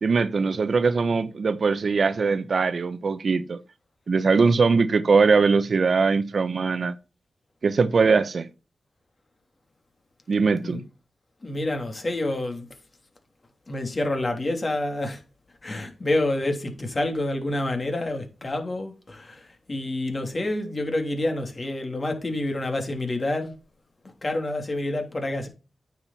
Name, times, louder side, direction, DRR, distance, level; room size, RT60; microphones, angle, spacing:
voice 1, 0.0-3.6 4.1-6.9 7.6-8.5 10.3-10.8, right 4 dB, 65° right, 0.9 m, -21 dB
voice 2, 11.4-12.7 13.7-15.2 15.6-23.5 24.2-25.5, left 2 dB, 45° left, 3.1 m, -28 dB
9.2 x 6.5 x 4.2 m
cardioid pair, 45°, 0 cm